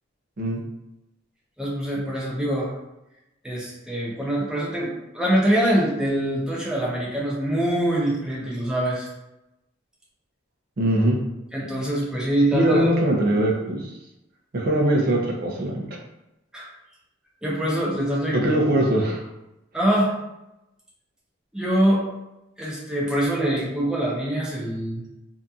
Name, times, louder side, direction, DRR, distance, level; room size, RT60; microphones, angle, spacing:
voice 1, 1.6-2.7 3.4-9.1 11.5-12.9 16.5-16.7 17.4-18.5 19.7-20.1 21.5-22.0 22.6-25.0, right 1 dB, 5° right, -6 dB, 0.6 m, -24 dB
voice 2, 10.8-11.2 12.5-13.9 14.5-15.9 18.3-19.2, right 1 dB, 50° right, -1 dB, 0.6 m, -21 dB
2.7 x 2.5 x 2.3 m, 0.92 s
head